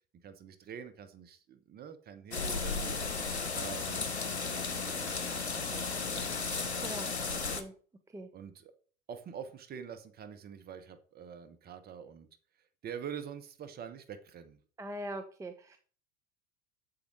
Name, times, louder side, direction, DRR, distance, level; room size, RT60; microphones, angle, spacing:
voice 1, 0.2-3.2 3.5-5.4 5.6-6.3 8.3-8.7 9.1-12.3 12.8-14.6, right 7 dB, 30° right, 8 dB, 1.4 m, -46 dB
sound 1, 2.3-7.6, left 4 dB, 75° left, 1.1 m, -34 dB
voice 2, 6.8-7.7 8.1-8.3 14.8-15.8, right 1 dB, 10° right, 6 dB, 0.7 m, -42 dB
7.8 x 7.1 x 4.8 m, 0.43 s
figure-of-eight pair, 80°, 33 cm